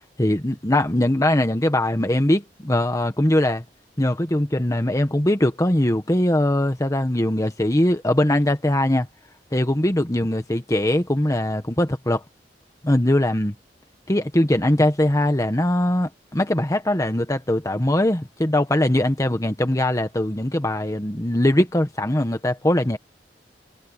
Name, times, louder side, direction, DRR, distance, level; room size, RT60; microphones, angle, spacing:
voice 1, 0.2-3.6 4.0-9.1 9.5-12.2 12.8-13.5 14.1-23.0, left 1 dB, 20° left, 1.3 m, -21 dB
head